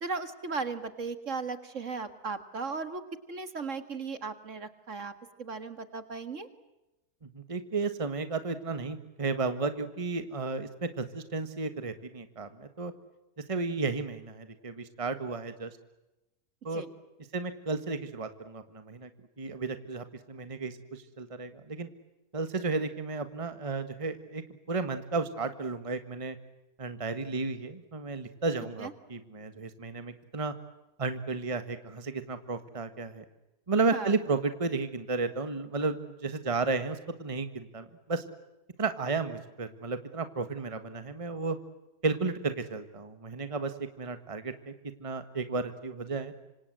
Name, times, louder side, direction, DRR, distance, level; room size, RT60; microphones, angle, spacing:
voice 1, 0.0-3.0 3.3-5.1 5.4-6.5 16.7-16.9 28.8-28.9 33.9-34.1, right 4 dB, 50° right, 11 dB, 2.1 m, -36 dB
voice 2, 7.3-12.9 13.5-15.7 16.6-16.8 17.3-19.1 19.4-21.9 22.3-24.4 24.7-26.4 26.8-30.5 31.0-33.2 33.7-38.2 38.8-41.6 42.0-44.7 45.0-46.4, right 4 dB, 20° right, 10 dB, 1.5 m, -33 dB
26.5 x 26.0 x 7.7 m, 0.96 s
omnidirectional pair, 1.6 m